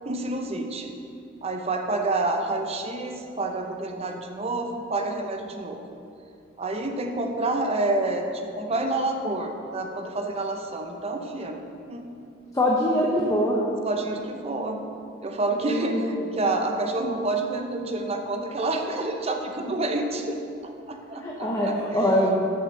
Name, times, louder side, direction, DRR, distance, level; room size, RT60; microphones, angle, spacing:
voice 1, 0.0-0.9 1.4-5.8 6.6-11.6 11.9-12.0 13.8-14.8 15.2-20.3 20.9-21.7 22.2-22.4, right 2 dB, 30° right, 4 dB, 0.6 m, -28 dB
voice 2, 12.5-13.6 15.6-16.0 21.2-22.4, equal, 15° left, -3 dB, 0.7 m, -23 dB
6.0 x 5.7 x 6.4 m, 2.5 s
head